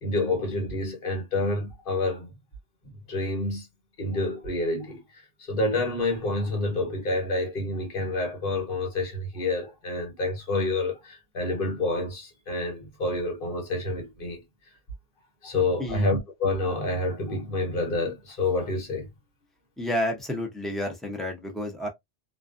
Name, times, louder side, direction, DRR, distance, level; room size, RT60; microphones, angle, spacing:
voice 1, 0.0-2.3 3.1-3.7 4.0-14.4 15.4-19.1, left 2 dB, 50° left, 1.1 m, -28 dB
voice 2, 19.8-21.9, left 1 dB, ahead, 0.5 m, -30 dB
2.4 x 2.2 x 2.4 m
omnidirectional pair, 1.2 m